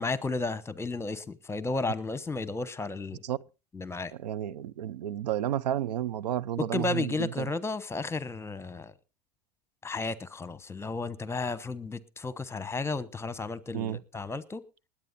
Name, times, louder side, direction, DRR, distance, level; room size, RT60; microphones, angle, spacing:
voice 1, 0.0-3.2 3.7-4.1 6.6-8.9 9.8-14.6, left 3 dB, 10° left, 1.1 m, -33 dB
voice 2, 4.2-7.5 13.7-14.0, right 11 dB, 85° right, 0.6 m, -31 dB
20.0 x 8.8 x 4.2 m
hypercardioid pair, 95°, 21 cm